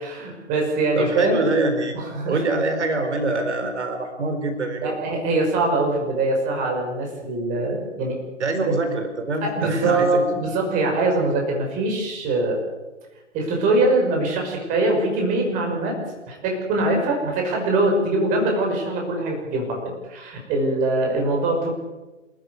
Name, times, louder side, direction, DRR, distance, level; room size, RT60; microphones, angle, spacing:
voice 1, 0.0-1.4 1.9-2.4 4.8-8.2 9.4-12.6 13.3-16.0 16.3-21.7, right 2 dB, 20° right, 1 dB, 5.7 m, -23 dB
voice 2, 1.0-2.0 2.3-5.0 8.4-10.2, right 2 dB, 60° right, 6 dB, 4.4 m, -24 dB
27.5 x 14.0 x 9.8 m, 1.1 s
hypercardioid pair, 145°, 38 cm